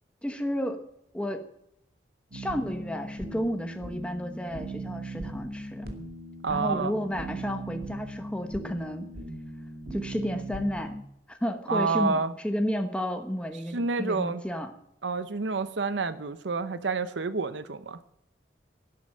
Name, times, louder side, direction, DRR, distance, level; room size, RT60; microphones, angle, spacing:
voice 1, 0.2-0.8 1.1-1.4 2.3-5.9 6.5-9.0 9.9-11.0 11.3-12.2 12.4-14.7, equal, 5° left, 5 dB, 1.1 m, -32 dB
sound 1, 2.3-11.0, right 1 dB, 55° right, 2.5 m, -39 dB
voice 2, 6.4-6.9 11.7-12.3 13.7-14.4 15.0-18.0, right 4 dB, 85° right, 13 dB, 0.8 m, -28 dB
12.0 x 10.5 x 7.6 m, 0.78 s
head